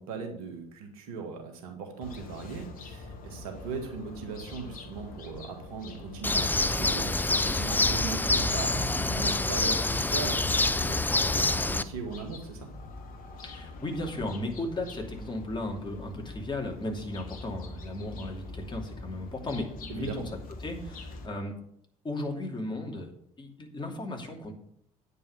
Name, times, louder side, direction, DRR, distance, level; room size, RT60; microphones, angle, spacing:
voice 1, 0.0-12.7 19.9-20.2, right 5 dB, 75° right, 4 dB, 1.9 m, -39 dB
sound 1, 2.0-21.3, left 3 dB, 50° left, 1.6 m, -44 dB
Bird, 6.2-11.8, left 2 dB, 10° left, 0.6 m, -26 dB
voice 2, 13.4-20.3 20.6-21.6 22.0-23.1 23.4-24.5, left 1 dB, 25° left, 1 dB, 2.8 m, -35 dB
9.1 x 5.4 x 7.3 m, 0.69 s
hypercardioid pair, 55°, 18 cm